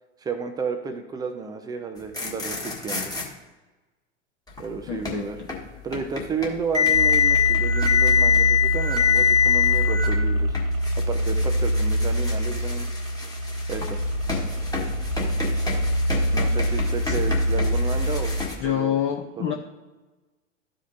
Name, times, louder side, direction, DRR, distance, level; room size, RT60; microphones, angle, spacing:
voice 1, 0.2-3.1 4.6-5.4 5.8-10.6 11.0-12.9 13.7-14.0 16.3-18.9 19.4-19.5, right 5 dB, 10° right, 6 dB, 0.3 m, -32 dB
sound 1, 2.0-3.3 4.5-18.5, left 7 dB, 10° left, 1.4 m, -26 dB
voice 2, 4.9-5.5 17.0-17.3 18.6-19.5, left 10 dB, 30° left, 3 dB, 0.7 m, -27 dB
sound 2, 6.9-18.4, equal, 90° right, 1.6 m, -25 dB
13.0 x 5.0 x 2.6 m, 1.2 s
hypercardioid pair, 100°, 38 cm